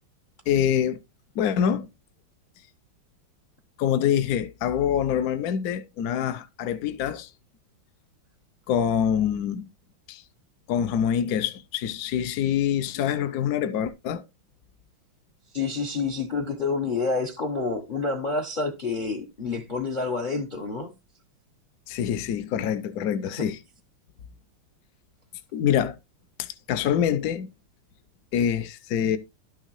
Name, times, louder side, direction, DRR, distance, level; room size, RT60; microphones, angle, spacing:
voice 1, 0.5-1.0 1.3-1.9 3.8-7.3 8.7-9.7 10.1-10.2 10.7-14.2 21.9-23.6 25.5-26.0 26.4-27.5 28.3-29.2, left 9 dB, 70° left, 0.9 m, -25 dB
voice 2, 15.5-20.9 23.4-23.5, left 4 dB, 50° left, 0.5 m, -28 dB
11.5 x 6.4 x 3.1 m
omnidirectional pair, 2.3 m